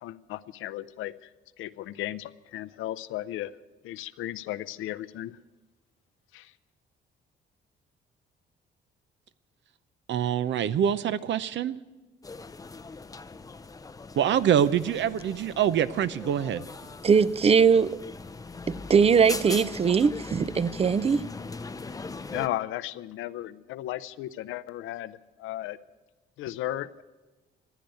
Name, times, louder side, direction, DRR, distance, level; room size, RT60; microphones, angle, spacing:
voice 1, 0.0-1.3 1.6-3.5 3.8-5.3 6.3-6.5 22.3-25.8 26.4-27.0, left 14 dB, 90° left, 0.6 m, -35 dB
voice 2, 10.1-11.8 14.2-16.6, right 9 dB, 65° right, 0.7 m, -25 dB
sound 1, 12.2-22.5, left 3 dB, 20° left, 0.5 m, -40 dB
voice 3, 17.0-18.0 18.7-21.3, right 6 dB, 30° right, 0.5 m, -21 dB
15.5 x 10.5 x 9.2 m
cardioid pair, 90°, 20 cm